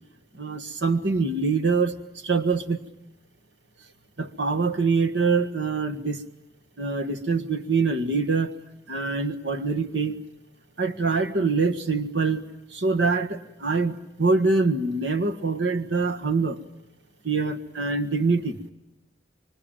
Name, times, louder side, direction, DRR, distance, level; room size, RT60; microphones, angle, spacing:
voice 1, 0.3-2.0 2.2-2.8 4.2-6.2 6.8-8.5 8.9-10.2 10.8-12.4 12.7-16.6 17.2-18.6, right 4 dB, 85° right, 8 dB, 1.7 m, -24 dB
26.0 x 24.0 x 8.9 m, 0.89 s
head